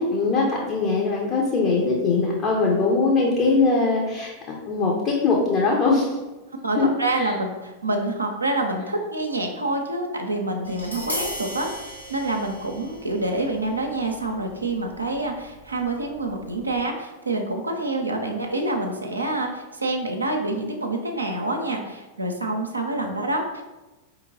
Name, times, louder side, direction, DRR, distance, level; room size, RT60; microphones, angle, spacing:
voice 1, 0.0-6.2 6.7-6.9 7.2-7.3, left 3 dB, 35° left, -2 dB, 0.8 m, -21 dB
voice 2, 6.6-23.6, right 2 dB, 80° right, 2 dB, 0.5 m, -27 dB
Tap, 10.6-16.8, equal, 90° left, 1.2 m, -38 dB
4.5 x 3.0 x 3.7 m, 1.1 s
figure-of-eight pair, 90°, 0 cm